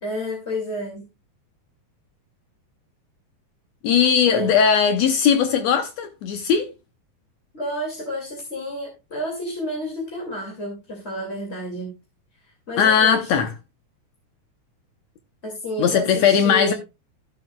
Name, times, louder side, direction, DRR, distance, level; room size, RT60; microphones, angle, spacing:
voice 1, 0.0-1.0 4.3-4.5 7.5-11.9 12.7-13.4 15.4-16.7, equal, 25° left, 2.3 m, -30 dB
voice 2, 3.8-6.7 12.8-13.5 15.8-16.7, left 7 dB, 70° left, 1.9 m, -18 dB
13.5 x 7.6 x 2.3 m
omnidirectional pair, 3.5 m